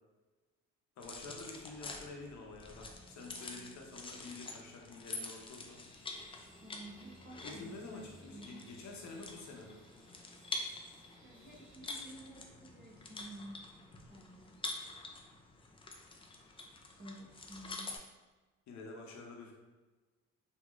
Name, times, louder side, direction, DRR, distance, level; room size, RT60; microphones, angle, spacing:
voice 1, 1.0-5.8 7.4-9.8 18.7-19.5, left 3 dB, 65° left, 0 dB, 0.8 m, -48 dB
sound 1, 1.0-18.0, left 2 dB, 20° left, 0.3 m, -47 dB
sound 2, 5.6-11.8, equal, 5° left, 1.4 m, -64 dB
voice 2, 6.6-8.6 11.2-14.5 17.0-17.9, right 1 dB, 35° right, -3 dB, 0.9 m, -52 dB
3.0 x 2.9 x 2.3 m, 1.2 s
cardioid pair, 90°, 30 cm